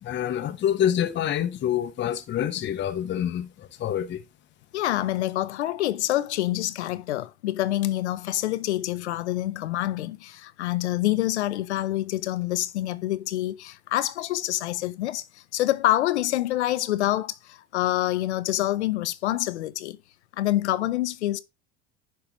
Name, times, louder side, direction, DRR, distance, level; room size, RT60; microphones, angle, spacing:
voice 1, 0.0-4.2, left 10 dB, 35° left, 0.7 m, -27 dB
voice 2, 4.7-20.0 20.4-21.4, left 15 dB, 90° left, 0.5 m, -26 dB
10.5 x 4.6 x 3.0 m
hypercardioid pair, 80°, 33 cm